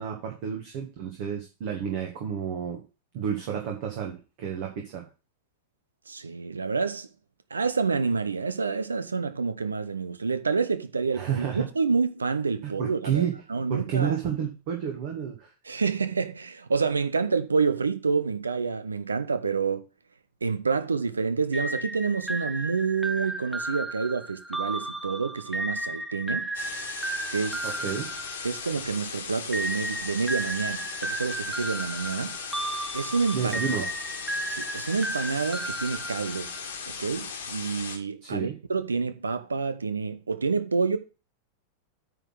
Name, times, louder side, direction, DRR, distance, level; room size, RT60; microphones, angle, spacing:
voice 1, 0.0-2.8 3.1-5.1 11.1-11.7 12.6-13.4 13.7-15.5 27.6-28.1 33.3-33.9 38.2-38.6, right 8 dB, 50° right, 1.7 m, -30 dB
voice 2, 6.1-7.1 7.5-14.2 15.6-19.8 20.4-26.5 27.3-27.7 28.4-32.3 32.9-33.5 34.5-36.6 37.0-41.0, right 5 dB, 75° right, 0.8 m, -28 dB
sound 1, 21.5-29.0 29.5-36.8, right 2 dB, 5° right, 0.6 m, -34 dB
sound 2, 26.5-38.0, left 6 dB, 65° left, 1.6 m, -37 dB
9.1 x 4.0 x 6.2 m
figure-of-eight pair, 90°, 0 cm